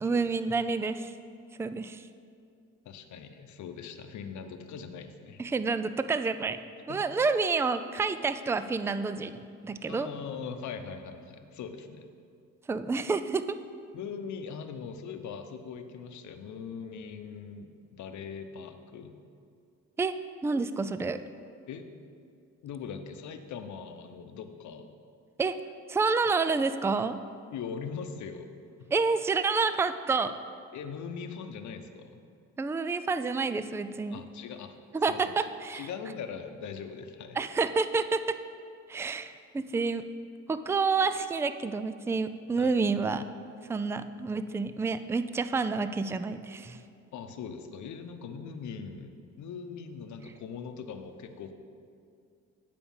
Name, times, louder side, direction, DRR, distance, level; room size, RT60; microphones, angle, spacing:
voice 1, 0.0-1.1 1.6-2.0 5.4-6.6 6.9-10.1 12.7-13.4 20.0-20.2 20.4-21.2 25.4-25.6 25.9-27.2 28.9-30.3 32.6-34.2 34.9-35.9 37.4-38.4 38.9-40.0 40.5-43.2 43.7-46.8, right 4 dB, 10° right, 12 dB, 0.3 m, -29 dB
voice 2, 2.8-5.4 6.9-7.1 9.9-12.1 13.9-19.1 21.7-21.9 22.6-24.9 27.5-28.5 28.8-28.9 30.7-32.2 34.1-34.7 35.1-37.4 42.6-42.8 47.1-51.5, left 6 dB, 70° left, 7 dB, 0.8 m, -41 dB
9.3 x 5.0 x 7.1 m, 2.4 s
cardioid pair, 90°, 30 cm